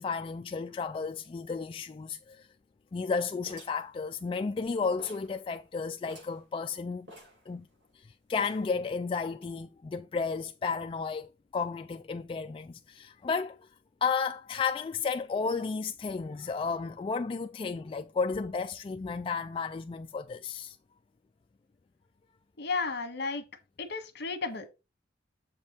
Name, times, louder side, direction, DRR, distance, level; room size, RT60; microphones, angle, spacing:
voice 1, 0.0-2.5 2.9-7.1 7.5-7.7 7.9-13.7 14.0-20.8, left 5 dB, 30° left, 0.3 m, -33 dB
sound 1, 3.5-4.7 5.0-5.4 5.7-5.8 6.0-6.4 7.1-7.9 8.3-8.8, equal, 70° right, 5.3 m, -51 dB
voice 2, 22.6-23.4 23.8-24.7, left 4 dB, 60° left, 1.5 m, -33 dB
7.3 x 5.3 x 4.3 m
head